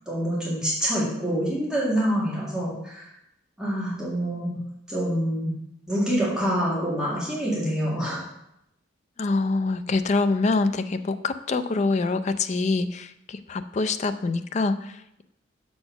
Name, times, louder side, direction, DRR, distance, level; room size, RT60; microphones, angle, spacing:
voice 1, 0.1-3.1 3.6-4.6 4.9-5.5 5.9-8.2, equal, 5° right, -8 dB, 2.0 m, -26 dB
voice 2, 9.2-15.2, left 3 dB, 35° left, 11 dB, 0.4 m, -25 dB
6.7 x 4.3 x 5.8 m, 0.81 s
head